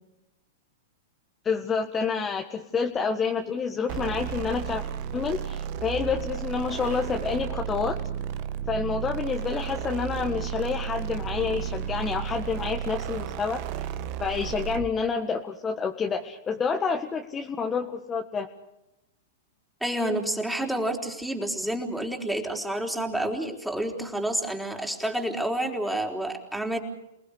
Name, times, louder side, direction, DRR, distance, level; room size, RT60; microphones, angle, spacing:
voice 1, 1.4-4.8 5.1-8.0 8.7-13.8 14.2-18.5, left 5 dB, 20° left, 3 dB, 1.6 m, -28 dB
sound 1, 3.9-15.0, right 9 dB, 50° right, 1.3 m, -33 dB
voice 2, 19.8-26.8, right 1 dB, ahead, 2 dB, 3.9 m, -29 dB
28.5 x 19.5 x 6.6 m, 0.90 s
hypercardioid pair, 105°, 0 cm